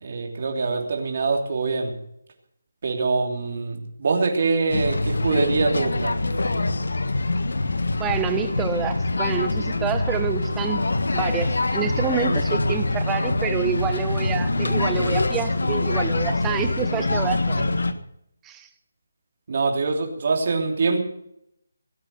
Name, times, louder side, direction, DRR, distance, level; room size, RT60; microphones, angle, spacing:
voice 1, 0.0-1.9 2.8-6.2 17.6-17.8 19.5-21.0, right 4 dB, 50° right, 1 dB, 3.3 m, -24 dB
sound 1, 4.7-17.9, left 2 dB, 80° left, 1.5 m, -24 dB
voice 2, 8.0-10.8 11.1-17.6 18.4-18.7, right 8 dB, 10° right, 8 dB, 1.2 m, -28 dB
18.5 x 8.9 x 7.7 m, 0.74 s
figure-of-eight pair, 165°, 0 cm